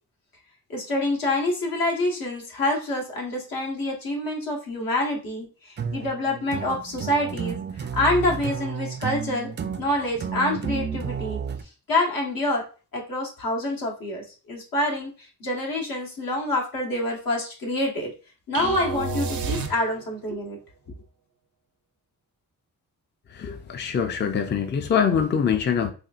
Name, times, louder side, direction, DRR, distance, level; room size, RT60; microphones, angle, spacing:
voice 1, 0.7-9.5 9.8-11.4 11.9-12.6 12.9-18.1 18.5-20.6, left 1 dB, 75° left, -2 dB, 1.4 m, -27 dB
sound 1, 5.8-11.6, right 7 dB, 30° right, 0.4 m, -32 dB
sound 2, 18.5-20.3, right 4 dB, 85° right, 0.7 m, -30 dB
voice 2, 23.3-25.9, left 7 dB, 30° left, 6 dB, 0.4 m, -24 dB
4.2 x 2.6 x 2.5 m, 0.35 s
cardioid pair, 80°, 35 cm